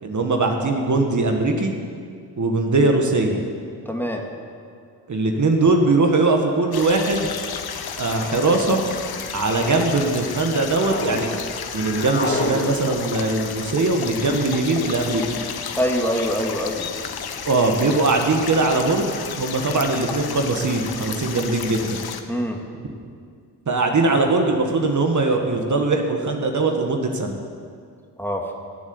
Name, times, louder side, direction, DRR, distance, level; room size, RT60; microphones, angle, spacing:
voice 1, 0.0-1.7 2.4-3.4 5.1-7.3 8.0-8.9 9.3-11.3 11.7-15.4 17.4-22.0 23.7-27.4, right 3 dB, 45° right, 3 dB, 1.8 m, -21 dB
voice 2, 3.9-4.2 15.8-16.9 22.3-22.6 28.2-28.5, equal, 5° left, 1 dB, 2.2 m, -24 dB
sound 1, 4.5-4.6 5.6-5.9 6.8-7.2 8.1-8.5 9.1-9.9 10.3-11.2 11.5-12.5, left 1 dB, 25° left, 3.0 m, -31 dB
sound 2, 6.7-22.2, left 7 dB, 65° left, 1.2 m, -32 dB
17.0 x 7.8 x 8.0 m, 2.2 s
cardioid pair, 60°, 40 cm